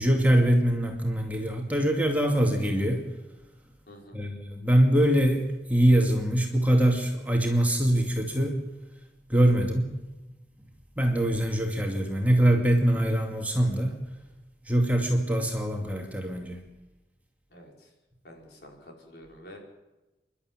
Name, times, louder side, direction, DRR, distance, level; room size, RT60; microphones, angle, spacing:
voice 1, 0.0-3.1 4.1-8.6 9.3-10.0 11.0-14.0 14.7-16.6, right 1 dB, 10° right, 1 dB, 2.4 m, -23 dB
voice 2, 3.9-4.2 17.5-17.9 18.2-19.6, left 1 dB, 65° left, 0 dB, 5.1 m, -48 dB
28.5 x 12.0 x 9.2 m, 1.1 s
head